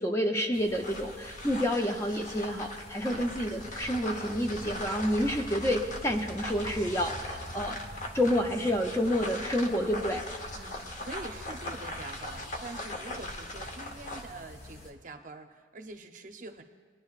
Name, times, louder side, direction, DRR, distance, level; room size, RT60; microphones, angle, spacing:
voice 1, 0.0-7.8 8.1-10.2, equal, 15° left, 3 dB, 0.6 m, -29 dB
sound 1, 0.5-14.9, left 1 dB, 60° left, 1.3 m, -48 dB
sound 2, 0.6-14.3, left 1 dB, 40° left, 1.0 m, -40 dB
voice 2, 10.6-16.6, right 2 dB, 45° right, 5 dB, 0.7 m, -45 dB
21.5 x 10.0 x 2.4 m, 1.5 s
head